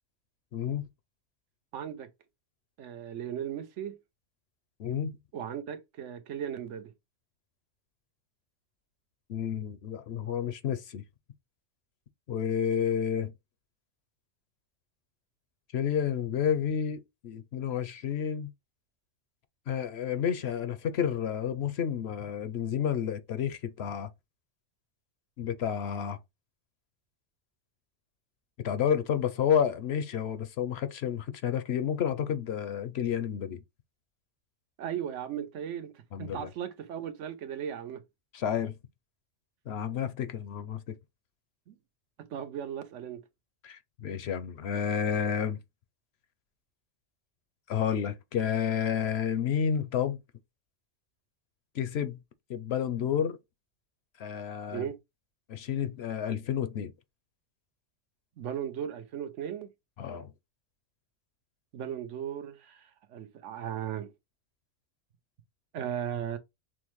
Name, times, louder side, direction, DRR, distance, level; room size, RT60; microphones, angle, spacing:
voice 1, 0.5-0.8 4.8-5.1 9.3-11.0 12.3-13.3 15.7-18.5 19.7-24.1 25.4-26.2 28.6-33.6 36.1-36.5 38.3-38.7 39.7-41.0 43.6-45.6 47.7-50.2 51.7-52.2 52.5-53.4 54.2-54.9 55.5-56.9 60.0-60.3, left 8 dB, 65° left, 0.8 m, -30 dB
voice 2, 1.7-2.1 2.8-4.0 5.3-6.9 34.8-38.0 41.7-41.8 42.2-43.2 54.7-55.0 58.4-59.7 61.7-64.1 65.7-66.4, right 9 dB, 75° right, 1.0 m, -37 dB
6.1 x 2.1 x 3.0 m
omnidirectional pair, 1.3 m